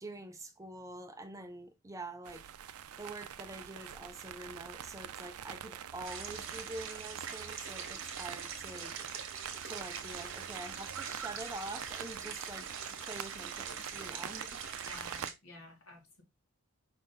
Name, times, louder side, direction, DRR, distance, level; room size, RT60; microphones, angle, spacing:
voice 1, 0.0-2.4 3.0-8.9 9.6-12.7 13.0-14.5, right 2 dB, 15° right, 0.4 m, -45 dB
sound 1, 2.3-15.3, right 9 dB, 80° right, 0.4 m, -45 dB
sound 2, 6.0-15.3, right 6 dB, 60° right, 1.0 m, -43 dB
voice 2, 14.8-16.2, left 2 dB, 75° left, 1.8 m, -52 dB
4.9 x 2.7 x 3.7 m
head